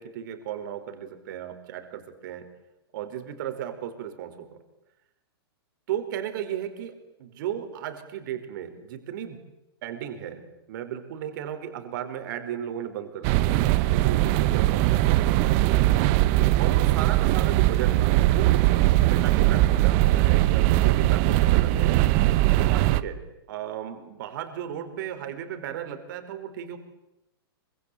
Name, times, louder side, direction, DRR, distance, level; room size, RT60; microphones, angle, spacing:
voice 1, 0.0-2.5 2.9-4.6 5.9-9.4 9.8-10.4 10.7-13.6 13.9-15.5 16.6-22.0 22.6-23.2 23.5-26.8, right 10 dB, 50° right, 8 dB, 4.6 m, -35 dB
sound 1, 13.2-23.0, right 16 dB, 35° right, 1.0 m, -20 dB
26.0 x 25.0 x 8.4 m, 0.93 s
hypercardioid pair, 150°, 13 cm